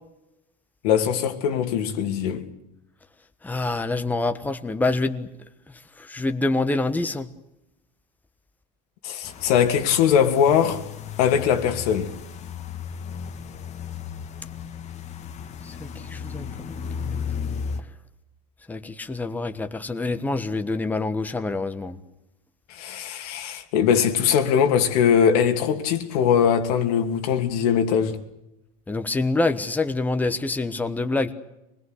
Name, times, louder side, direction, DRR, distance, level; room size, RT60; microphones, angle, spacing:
voice 1, 0.8-2.4 9.0-10.8 11.2-12.1 22.7-28.2, left 8 dB, 90° left, 2.9 m, -21 dB
voice 2, 3.4-5.3 6.0-7.3 15.6-16.8 18.7-22.0 28.9-31.3, left 2 dB, 10° left, 1.3 m, -26 dB
sound 1, 9.2-17.8, left 6 dB, 35° left, 1.8 m, -35 dB
25.0 x 20.5 x 8.1 m
cardioid pair, 140°, 19 cm